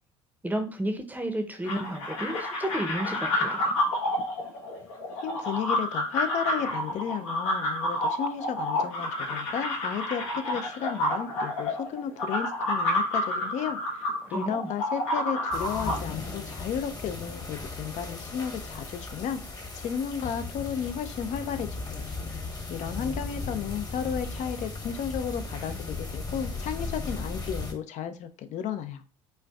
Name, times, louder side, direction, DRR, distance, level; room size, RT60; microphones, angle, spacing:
voice 1, 0.4-3.7 14.2-14.7, right 1 dB, 10° right, 5 dB, 0.7 m, -32 dB
sound 1, 1.6-16.0, left 1 dB, 75° left, 1.0 m, -29 dB
voice 2, 5.2-19.4 19.7-22.1 22.7-29.0, left 8 dB, 50° left, 10 dB, 0.5 m, -33 dB
sound 2, 15.5-27.7, left 3 dB, 25° left, 1.0 m, -36 dB
4.3 x 2.4 x 2.3 m, 0.35 s
hypercardioid pair, 65°, 15 cm